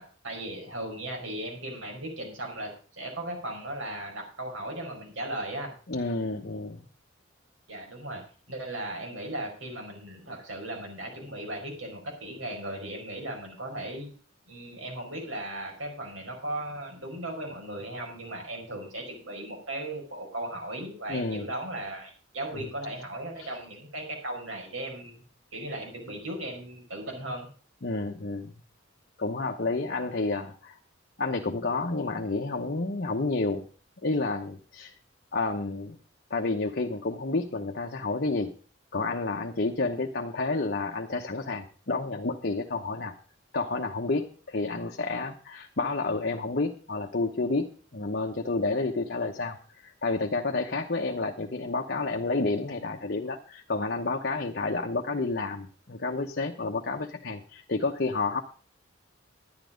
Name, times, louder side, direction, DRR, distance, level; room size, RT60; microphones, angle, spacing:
voice 1, 0.0-5.7 7.7-14.1 14.5-25.2 25.5-27.5, right 1 dB, 75° right, 1 dB, 5.4 m, -37 dB
voice 2, 5.9-6.9 21.1-21.4 22.5-22.7 23.4-23.5 27.8-28.5 29.2-30.8 31.2-33.7 34.0-34.9 35.3-36.0 36.3-38.5 38.9-43.2 43.5-49.6 49.8-58.4, left 3 dB, 50° left, 2 dB, 1.0 m, -30 dB
11.5 x 10.5 x 5.1 m, 0.39 s
head